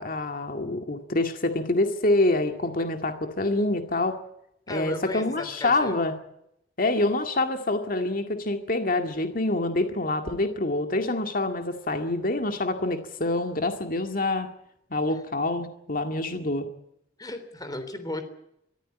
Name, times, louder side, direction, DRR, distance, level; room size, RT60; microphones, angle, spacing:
voice 1, 0.0-4.2 4.7-6.1 6.8-14.5 14.9-16.7, left 2 dB, 50° left, 6 dB, 2.1 m, -26 dB
voice 2, 4.7-5.9 17.2-18.2, left 1 dB, 20° left, 10 dB, 3.5 m, -35 dB
24.0 x 14.5 x 9.6 m, 0.78 s
head